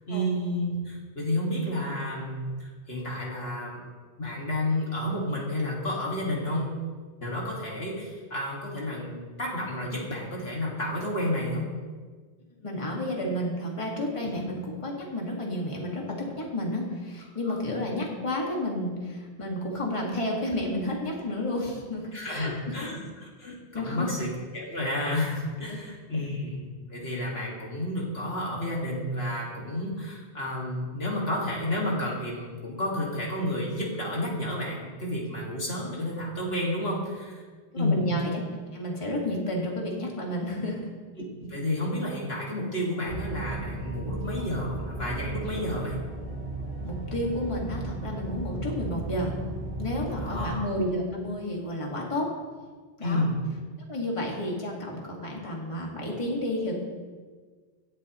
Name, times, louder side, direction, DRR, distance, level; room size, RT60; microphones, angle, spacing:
voice 1, 0.1-3.8 4.2-6.8 7.2-11.7 14.2-14.3 17.5-17.6 22.1-37.4 37.8-38.1 41.4-46.0 50.2-50.6 53.0-53.4, left 1 dB, 65° left, -3 dB, 2.4 m, -31 dB
voice 2, 12.6-22.7 23.7-24.1 25.7-25.8 26.1-26.2 37.7-38.4 38.7-40.9 46.8-49.4 49.8-52.3 53.0-53.2 53.9-56.8, left 1 dB, 30° left, -2 dB, 2.0 m, -31 dB
sound 1, 43.1-50.6, right 2 dB, 55° right, 3.1 m, -35 dB
16.5 x 11.5 x 3.1 m, 1.5 s
omnidirectional pair, 1.1 m